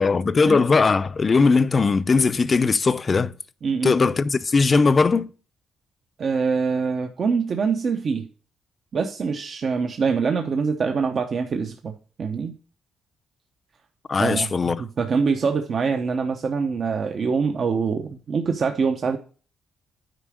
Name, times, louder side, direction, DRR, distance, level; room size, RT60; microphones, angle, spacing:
voice 1, 0.0-3.3 3.8-5.3 14.1-14.8, left 4 dB, 35° left, 0.6 m, -19 dB
voice 2, 3.6-4.0 6.2-8.3 8.9-11.9 12.2-12.5 14.2-14.5 14.8-19.2, right 5 dB, 50° right, 0.8 m, -24 dB
9.1 x 4.9 x 4.9 m
cardioid pair, 90°, 0 cm